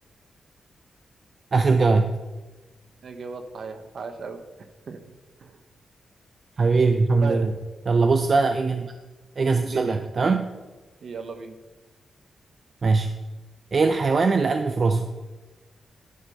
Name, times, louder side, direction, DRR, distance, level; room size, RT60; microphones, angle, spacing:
voice 1, 1.5-2.1 6.6-7.5 7.9-8.9 9.4-10.5 12.8-13.1 13.7-15.1, right 4 dB, 40° right, 7 dB, 0.5 m, -21 dB
voice 2, 3.0-4.4 4.9-5.0 5.4-5.6 7.2-7.5 8.3-8.4 9.6-10.4 11.0-11.6, right 4 dB, 55° right, 8 dB, 0.9 m, -36 dB
12.0 x 5.2 x 5.4 m, 1.2 s
wide cardioid pair, 145°, 0 cm